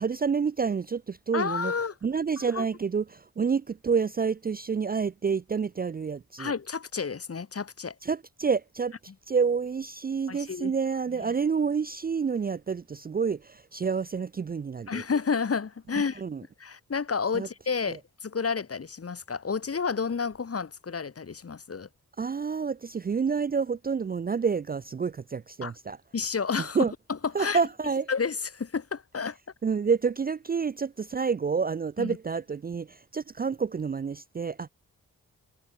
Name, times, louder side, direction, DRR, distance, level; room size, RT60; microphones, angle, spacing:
voice 1, 0.0-1.7 2.0-6.5 8.0-9.0 9.3-15.0 15.9-16.4 17.3-17.5 17.9-18.0 22.2-26.0 26.7-26.9 27.3-28.1 29.6-34.7, right 5 dB, 30° right, 0.4 m, -28 dB
voice 2, 1.3-1.9 2.5-2.6 6.4-7.9 10.3-10.7 14.9-16.2 16.6-21.9 25.6-25.7 26.1-26.8 27.4-27.6 28.1-29.4 32.0-32.2, left 5 dB, 45° left, 1.7 m, -30 dB
cardioid pair, 50°, 33 cm